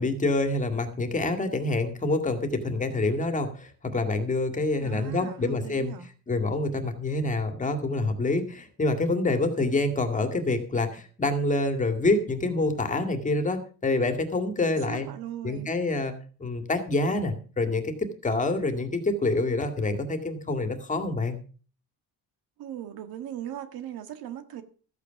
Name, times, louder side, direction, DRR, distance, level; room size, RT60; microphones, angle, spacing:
voice 1, 0.0-5.9 6.3-15.1 15.4-21.4, left 2 dB, 20° left, 2.2 m, -27 dB
voice 2, 4.8-6.1 14.6-15.7 22.6-24.6, right 10 dB, 75° right, 1.8 m, -39 dB
14.0 x 8.6 x 5.9 m
cardioid pair, 130°, 36 cm